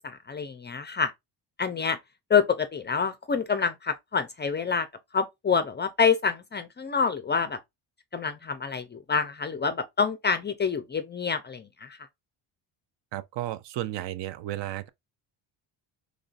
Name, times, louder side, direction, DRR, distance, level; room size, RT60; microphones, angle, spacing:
voice 1, 0.0-1.1 1.6-2.0 2.3-4.9 5.1-7.6 8.1-12.0, left 6 dB, 25° left, 0.4 m, -27 dB
voice 2, 13.1-14.9, right 14 dB, 60° right, 0.6 m, -33 dB
3.8 x 3.2 x 2.4 m
supercardioid pair, 80°, 48 cm